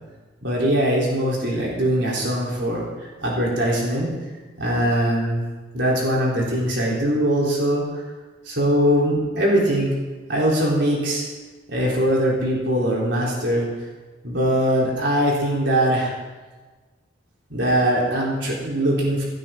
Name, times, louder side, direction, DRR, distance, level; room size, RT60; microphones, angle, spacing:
voice 1, 0.4-4.1 4.6-5.4 5.7-7.8 8.4-9.9 10.3-11.2 11.7-13.7 14.2-16.1 17.5-19.2, equal, 75° right, -4 dB, 3.9 m, -21 dB
16.5 x 12.0 x 3.9 m, 1.3 s
head